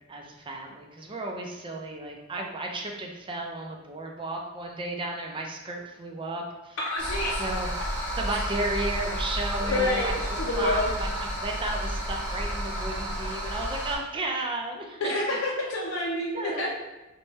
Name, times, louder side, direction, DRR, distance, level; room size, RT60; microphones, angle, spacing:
voice 1, 0.0-6.8 7.4-7.7 8.2-10.1 10.6-15.1 16.3-16.7, right 2 dB, 25° right, 1 dB, 0.4 m, -33 dB
voice 2, 6.8-7.4 9.7-10.9 15.0-16.7, left 2 dB, 85° left, -4 dB, 0.5 m, -28 dB
sound 1, 7.0-13.9, equal, 10° left, 1.2 m, -31 dB
3.2 x 2.2 x 4.0 m, 1.0 s
head